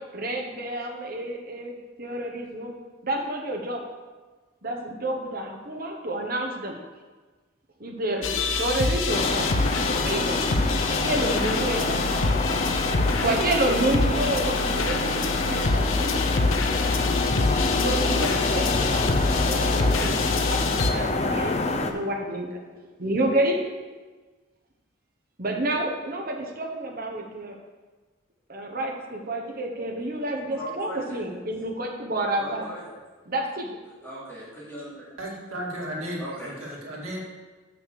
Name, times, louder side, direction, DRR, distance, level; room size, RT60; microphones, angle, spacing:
voice 1, 0.1-2.7 3.0-3.8 4.6-6.8 7.8-9.5 9.8-10.5 10.9-12.2 12.9-16.5 17.8-22.7 23.0-23.6 25.4-27.6 28.5-32.6 33.2-33.7, right 1 dB, 45° right, 1 dB, 1.2 m, -29 dB
sound 1, 8.2-20.9, left 3 dB, 75° left, 0.7 m, -26 dB
sound 2, 9.1-21.9, left 3 dB, 30° left, 0.5 m, -27 dB
voice 2, 30.5-31.2 32.4-32.9 34.0-35.1 36.2-36.5, right 1 dB, 10° left, -11 dB, 2.7 m, -38 dB
voice 3, 35.2-37.2, equal, 80° right, -4 dB, 2.5 m, -34 dB
6.4 x 6.4 x 6.5 m, 1.3 s
head